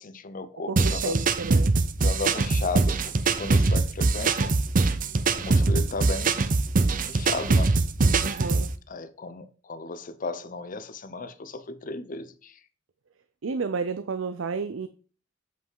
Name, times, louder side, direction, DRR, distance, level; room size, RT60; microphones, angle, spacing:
voice 1, 0.0-1.1 2.0-4.5 5.3-6.4 7.0-7.7 8.9-12.6, left 3 dB, 45° left, 0.7 m, -35 dB
voice 2, 0.7-1.7 5.0-5.2 8.2-8.7 13.4-14.9, right 5 dB, 85° right, 0.5 m, -32 dB
sound 1, 0.8-8.7, right 3 dB, 45° right, 0.6 m, -23 dB
7.7 x 5.5 x 4.7 m
head